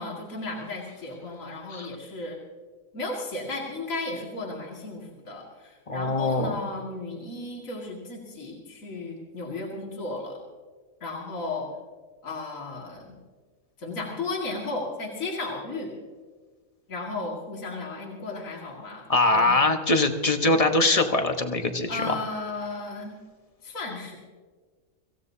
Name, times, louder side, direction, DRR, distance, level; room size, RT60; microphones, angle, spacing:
voice 1, 0.0-2.4 2.9-10.4 11.0-11.7 12.2-13.2 13.8-15.9 16.9-19.1 19.3-19.6 21.9-23.2 23.6-24.2, left 2 dB, 60° left, -2 dB, 2.6 m, -34 dB
voice 2, 5.9-6.6 19.1-22.1, left 2 dB, 25° left, 6 dB, 1.0 m, -23 dB
25.0 x 16.0 x 2.8 m, 1.5 s
omnidirectional pair, 1.6 m